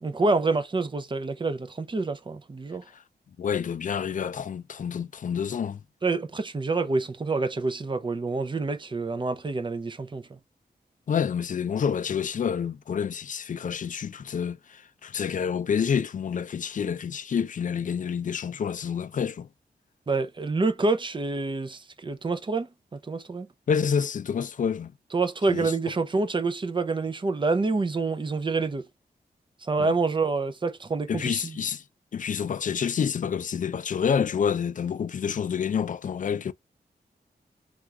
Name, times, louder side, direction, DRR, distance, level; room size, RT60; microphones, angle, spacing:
voice 1, 0.0-2.8 6.0-10.4 20.1-23.5 25.1-28.9 29.6-31.6, right 3 dB, 30° right, 0.6 m, -27 dB
voice 2, 3.4-5.8 11.1-19.5 23.7-24.9 25.5-25.7 29.8-29.9 31.1-31.8 32.1-36.5, left 7 dB, 50° left, 0.4 m, -28 dB
3.4 x 2.4 x 2.8 m
wide cardioid pair, 85°, 17 cm